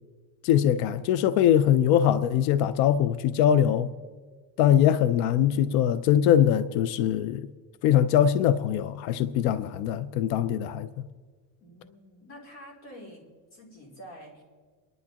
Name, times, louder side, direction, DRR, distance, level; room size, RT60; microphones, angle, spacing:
voice 1, 0.4-3.9 4.6-7.5 7.8-10.9, left 10 dB, 60° left, 0.5 m, -22 dB
voice 2, 11.6-14.4, equal, 35° left, 3.0 m, -47 dB
28.5 x 11.0 x 2.9 m
cardioid pair, 170°, 45 cm